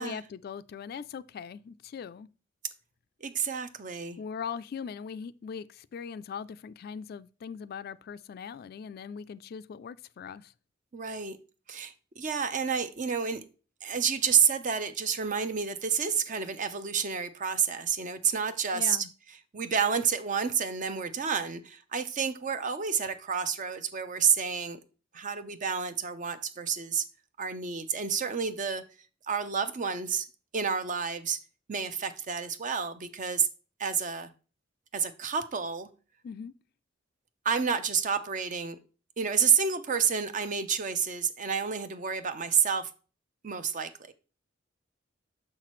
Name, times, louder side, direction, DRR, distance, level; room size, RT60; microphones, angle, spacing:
voice 1, 0.0-2.3 4.2-10.5 18.7-19.1 36.2-36.5, left 6 dB, 55° left, 0.3 m, -40 dB
voice 2, 3.2-4.2 10.9-11.4 11.7-13.4 13.8-19.0 19.5-24.8 25.1-27.0 27.4-28.8 29.3-30.3 30.5-31.4 31.7-33.5 33.8-34.3 34.9-35.9 37.4-38.8 39.2-42.9 43.4-44.1, right 6 dB, 40° right, 0.6 m, -29 dB
6.5 x 5.8 x 3.0 m
head